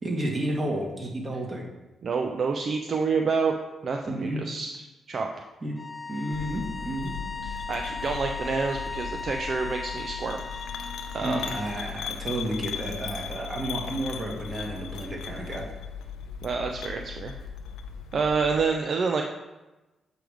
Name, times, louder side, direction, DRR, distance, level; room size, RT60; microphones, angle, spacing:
voice 1, 0.0-1.6 4.1-4.4 5.6-5.8 6.1-7.1 11.2-15.7, right 1 dB, 35° right, 0 dB, 1.7 m, -31 dB
voice 2, 2.0-3.6 3.8-4.8 5.1-5.3 7.4-10.4 11.1-11.5 16.4-17.3 18.1-19.2, right 4 dB, 55° right, 3 dB, 0.5 m, -28 dB
sound 1, 5.7-11.9, left 4 dB, 30° left, 0.4 m, -37 dB
sound 2, 6.3-18.7, left 7 dB, 85° left, 0.5 m, -38 dB
7.5 x 3.4 x 5.0 m, 1.1 s
supercardioid pair, 65°, 0 cm